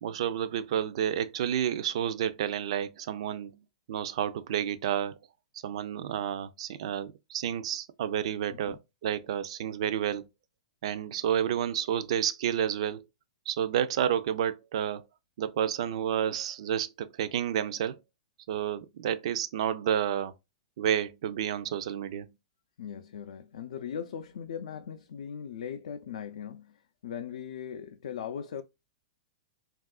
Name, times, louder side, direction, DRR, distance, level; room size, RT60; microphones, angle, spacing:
voice 1, 0.0-3.5 3.9-5.2 5.6-10.3 10.8-13.0 13.5-15.0 15.4-18.0 18.5-20.3 20.8-22.3, right 9 dB, 60° right, 0.4 m, -30 dB
voice 2, 22.8-28.6, left 8 dB, 80° left, 0.3 m, -39 dB
3.5 x 2.4 x 2.3 m
supercardioid pair, 165°, 4 cm